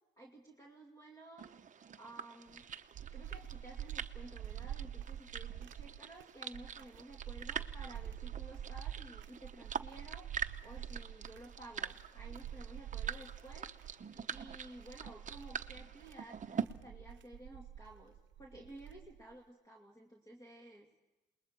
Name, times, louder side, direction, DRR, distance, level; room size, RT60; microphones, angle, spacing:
voice 1, 0.2-1.5 2.0-2.8 3.1-10.3 10.6-20.9, right 1 dB, 20° left, -1 dB, 2.6 m, -54 dB
sound 1, 1.4-16.6, right 7 dB, 40° right, 0.8 m, -45 dB
sound 2, 2.5-19.3, right 10 dB, 80° right, 0.8 m, -47 dB
28.0 x 20.5 x 4.6 m, 1.1 s
cardioid pair, 105°, 19 cm